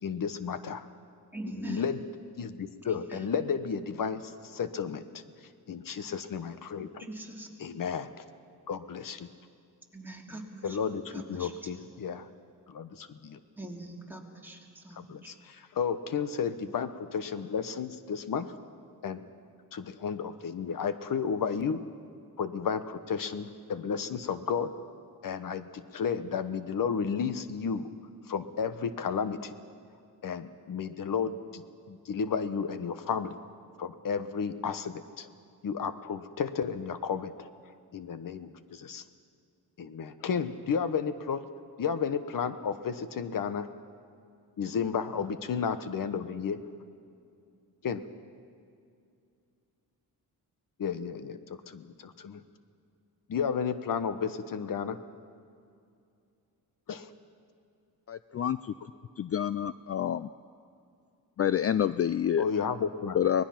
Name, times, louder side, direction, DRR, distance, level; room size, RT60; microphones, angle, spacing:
voice 1, 0.0-0.9 1.6-2.0 2.4-5.2 5.7-7.1 7.6-8.1 8.7-9.3 10.6-12.3 12.7-13.4 14.9-18.5 19.0-19.2 19.7-21.8 22.4-24.7 25.2-27.9 28.3-29.5 30.2-33.4 33.8-35.3 35.6-37.5 37.9-39.0 39.8-41.4 41.8-43.7 44.6-46.6 47.8-48.0 50.8-52.4 53.3-55.0 56.9-57.1 62.4-63.2, left 6 dB, 60° left, 12 dB, 1.1 m, -32 dB
voice 2, 1.3-1.9 2.8-3.3 7.0-7.5 9.9-10.8 11.1-11.8 13.6-15.3, right 2 dB, 5° right, -1 dB, 2.8 m, -43 dB
voice 3, 58.1-58.7 59.2-60.3 61.4-62.5 63.1-63.4, left 9 dB, 40° left, 14 dB, 0.4 m, -28 dB
24.0 x 19.5 x 5.9 m, 2.5 s
cardioid pair, 100°, 38 cm